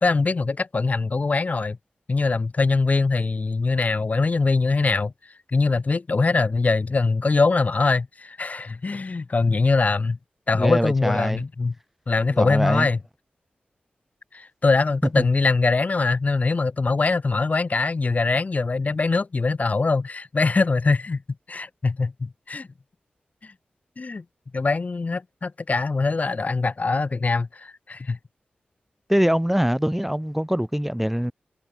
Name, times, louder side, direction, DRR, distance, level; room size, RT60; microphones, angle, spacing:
voice 1, 0.0-1.8 2.1-5.1 5.5-10.2 10.5-11.7 12.1-13.0 14.3-21.2 21.5-22.7 23.4-23.5 24.0-24.2 24.5-28.2, left 3 dB, 45° left, 0.7 m, -22 dB
voice 2, 10.5-11.4 12.3-12.9 15.2-15.3 29.1-31.3, equal, 5° right, 0.6 m, -23 dB
cardioid pair, 50°, 3 cm